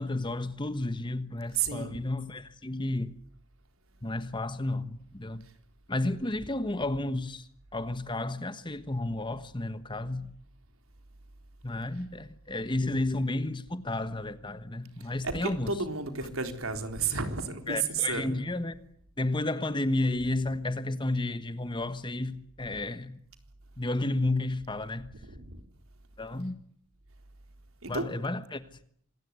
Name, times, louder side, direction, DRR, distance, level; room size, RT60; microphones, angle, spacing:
voice 1, 0.0-3.2 4.0-5.4 5.9-10.3 11.6-15.7 17.7-18.8 19.2-23.2 23.8-25.1 26.2-26.6 27.9-28.8, left 2 dB, 20° left, 1.3 m, -32 dB
voice 2, 1.5-2.0 6.4-6.5 15.2-18.3 25.2-25.6 27.8-28.1, right 5 dB, 85° right, 3.9 m, -32 dB
26.0 x 20.0 x 9.6 m
head